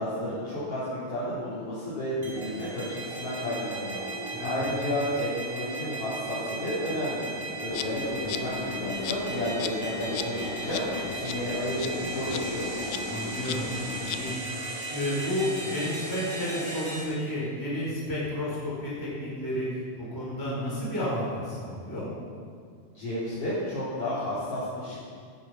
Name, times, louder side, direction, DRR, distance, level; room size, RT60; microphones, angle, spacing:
voice 1, 0.0-12.7 22.9-25.0, equal, 45° left, -12 dB, 4.8 m, -32 dB
sound 1, 2.2-17.0, right 2 dB, 25° right, 2.6 m, -36 dB
voice 2, 4.3-4.6 13.1-13.7 13.9-14.3 14.9-19.7 20.0-22.1, left 1 dB, 5° left, -7 dB, 4.4 m, -31 dB
Insect, 7.7-14.4, left 10 dB, 80° left, 2.0 m, -37 dB
16.5 x 10.5 x 5.8 m, 2.1 s
omnidirectional pair, 3.8 m